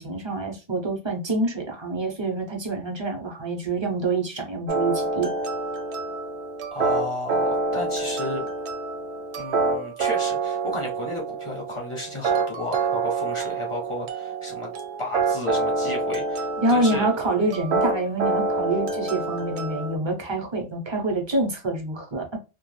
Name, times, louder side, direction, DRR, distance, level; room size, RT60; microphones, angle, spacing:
voice 1, 0.0-5.3 16.6-22.4, right 2 dB, 30° right, 0.5 m, -26 dB
sound 1, 4.7-20.0, right 3 dB, 70° right, 0.8 m, -27 dB
voice 2, 6.7-8.4 9.4-14.7 15.0-17.1, left 2 dB, 35° left, 0.5 m, -33 dB
2.3 x 2.2 x 3.1 m
omnidirectional pair, 1.3 m